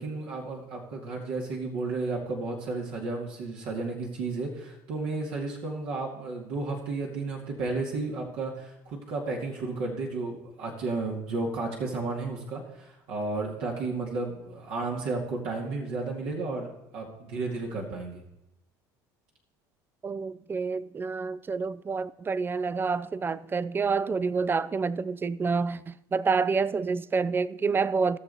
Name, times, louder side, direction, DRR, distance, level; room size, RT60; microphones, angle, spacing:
voice 1, 0.0-18.2, right 3 dB, 65° right, 2.3 m, -33 dB
voice 2, 20.0-28.2, right 4 dB, 20° right, 0.4 m, -28 dB
17.0 x 6.6 x 4.1 m
hypercardioid pair, 75°, 10 cm